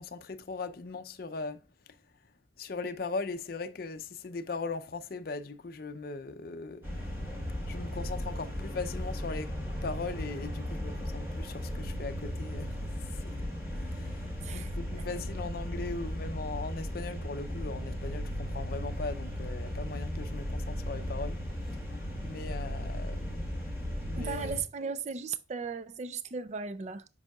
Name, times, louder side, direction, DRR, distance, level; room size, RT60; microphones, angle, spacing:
voice 1, 0.0-1.6 2.6-7.0 7.7-9.6 9.8-12.8 13.1-13.5 13.8-21.4 21.7-21.8 22.2-23.5 24.0-24.6, left 3 dB, 50° left, 0.5 m, -39 dB
sound 1, 6.8-24.6, equal, 15° right, 2.4 m, -36 dB
voice 2, 14.4-15.0 24.1-27.1, right 5 dB, 35° right, 0.4 m, -37 dB
7.9 x 5.5 x 2.3 m
head